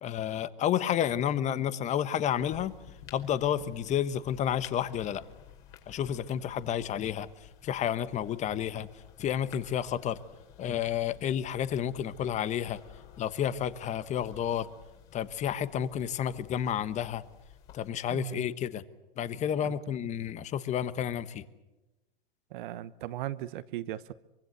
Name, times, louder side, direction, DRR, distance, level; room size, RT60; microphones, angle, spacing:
voice 1, 0.0-2.7 3.1-5.2 5.9-7.3 7.6-8.9 9.2-10.2 10.6-12.8 13.2-14.7 15.1-17.2 17.7-18.8 19.2-21.4, left 10 dB, 25° left, 1.1 m, -30 dB
sound 1, 2.4-17.9, left 8 dB, 45° left, 4.9 m, -53 dB
voice 2, 18.1-18.6 19.6-19.7 22.5-24.1, right 14 dB, 60° right, 1.1 m, -37 dB
24.5 x 24.0 x 8.0 m
hypercardioid pair, 125°, 29 cm